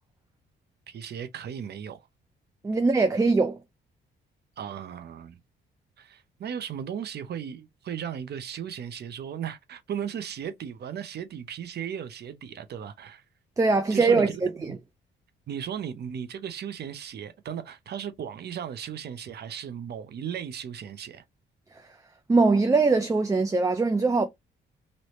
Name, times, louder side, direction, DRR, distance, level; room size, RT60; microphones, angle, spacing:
voice 1, 0.9-2.1 4.6-5.4 6.0-13.2 13.9-14.3 14.7-14.8 15.5-21.2, right 8 dB, 55° right, 0.7 m, -36 dB
voice 2, 2.6-3.6 13.6-14.8 22.3-24.3, right 3 dB, 15° right, 0.4 m, -22 dB
3.2 x 2.7 x 3.0 m
cardioid pair, 90°, 20 cm